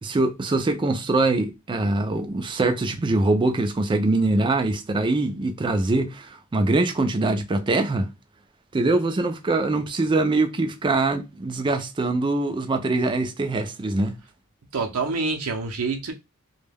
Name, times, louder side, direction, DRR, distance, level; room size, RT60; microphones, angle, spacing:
voice 1, 0.0-8.1 8.7-14.2, right 2 dB, 20° right, 0.3 m, -23 dB
voice 2, 14.7-16.1, right 4 dB, 75° right, 0.5 m, -26 dB
2.2 x 2.1 x 3.3 m
head